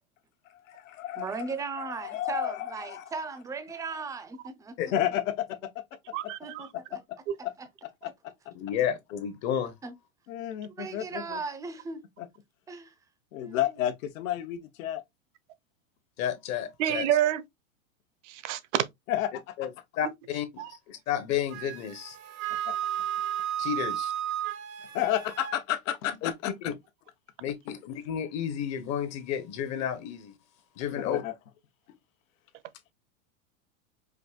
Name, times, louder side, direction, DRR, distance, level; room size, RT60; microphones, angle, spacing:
voice 1, 0.4-3.0 4.9-5.8 6.2-6.3 6.7-7.0 7.4-7.5 7.8-8.3 10.3-11.4 12.2-12.3 13.3-15.0 19.1-19.3 22.7-22.8 24.9-26.7 30.9-31.3 31.9-32.0, left 12 dB, 70° left, 0.9 m, -32 dB
voice 2, 1.2-5.0 6.4-7.0 9.8-9.9 10.6-12.0 12.7-12.9 13.4-13.6, right 4 dB, 10° right, 0.5 m, -37 dB
voice 3, 6.1-6.6 7.3-7.4 16.8-17.4 18.3-18.8 20.6-20.7, right 12 dB, 55° right, 0.8 m, -27 dB
voice 4, 8.5-9.7 16.2-17.1 19.6-19.7 20.0-22.2 23.6-24.1 26.2-26.3 27.4-30.3 30.8-31.2, left 9 dB, 40° left, 0.9 m, -31 dB
Wind instrument woodwind instrument, 21.5-25.6, right 11 dB, 75° right, 1.1 m, -33 dB
4.8 x 2.6 x 2.3 m
hypercardioid pair, 125°, 42 cm